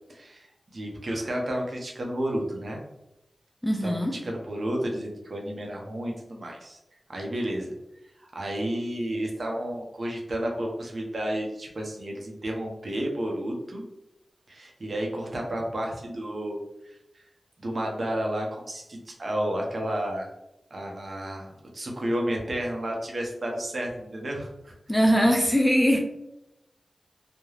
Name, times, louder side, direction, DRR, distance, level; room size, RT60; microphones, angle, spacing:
voice 1, 0.1-2.8 3.8-3.9 4.2-6.8 7.1-7.8 8.2-13.8 14.5-17.0 17.6-20.3 20.7-24.7 25.9-26.0, right 1 dB, 60° right, 0 dB, 0.7 m, -31 dB
voice 2, 3.6-4.2 24.9-26.0, equal, 10° left, 1 dB, 0.4 m, -21 dB
2.3 x 2.2 x 3.1 m, 0.86 s
cardioid pair, 45°, 0 cm